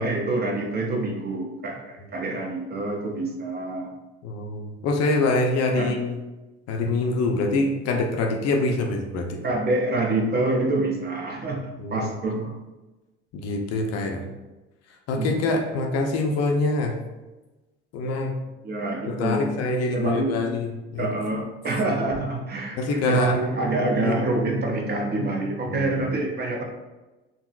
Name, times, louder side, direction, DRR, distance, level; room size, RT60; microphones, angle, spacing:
voice 1, 0.0-3.9 5.8-6.0 9.4-12.5 15.1-15.4 18.6-19.5 19.9-20.6 21.0-26.6, right 2 dB, 30° right, 1 dB, 0.6 m, -26 dB
voice 2, 4.2-6.2 6.7-9.4 11.8-12.1 13.3-14.3 15.1-17.0 17.9-18.4 19.1-21.1 22.8-23.4 23.9-24.2 25.7-25.9, left 2 dB, 50° left, 3 dB, 0.5 m, -25 dB
3.6 x 2.0 x 2.3 m, 1.1 s
hypercardioid pair, 65°, 33 cm